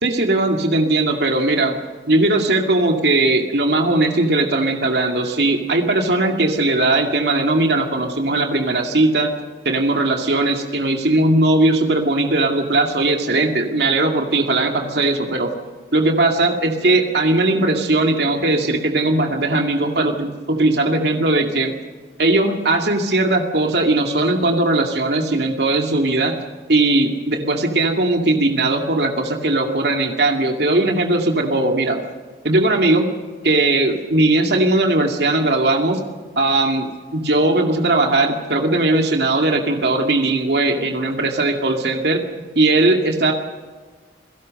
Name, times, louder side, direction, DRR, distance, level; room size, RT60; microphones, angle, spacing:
voice 1, 0.0-1.8 2.1-9.3 9.6-15.5 15.9-21.7 22.2-26.4 26.7-32.0 32.4-33.1 33.4-36.0 36.4-42.2 42.6-43.3, right 2 dB, 65° right, 3 dB, 2.3 m, -18 dB
28.5 x 17.5 x 6.5 m, 1.4 s
head